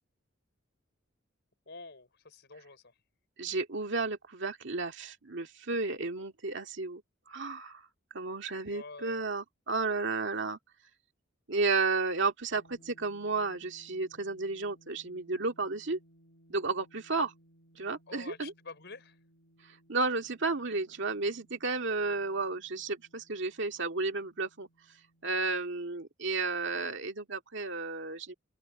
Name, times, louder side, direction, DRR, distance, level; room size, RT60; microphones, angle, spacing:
voice 1, 1.7-2.9 8.7-9.3 18.1-19.2 21.8-22.2, left 3 dB, 60° left, 5.5 m, -48 dB
voice 2, 3.4-7.0 7.3-7.8 8.1-10.6 11.5-16.0 16.5-17.3 17.8-18.5 19.9-24.7 25.2-28.3, right 3 dB, 65° right, 2.1 m, -32 dB
sound 1, 12.5-25.6, right 1 dB, 75° left, 3.4 m, -64 dB
open air
head